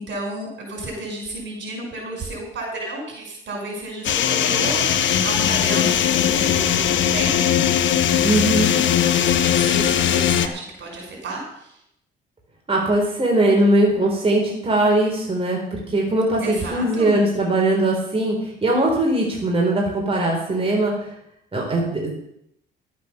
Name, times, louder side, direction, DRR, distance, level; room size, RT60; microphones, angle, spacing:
voice 1, 0.0-7.5 9.0-11.7 16.4-17.1, right 2 dB, 65° right, 0 dB, 6.0 m, -32 dB
sound 1, 4.0-10.5, left 9 dB, 70° left, 1.0 m, -19 dB
voice 2, 8.2-8.8 12.7-20.9 21.5-22.2, right 1 dB, 30° right, -2 dB, 3.9 m, -20 dB
12.0 x 8.5 x 6.9 m, 0.76 s
cardioid pair, 90°, 20 cm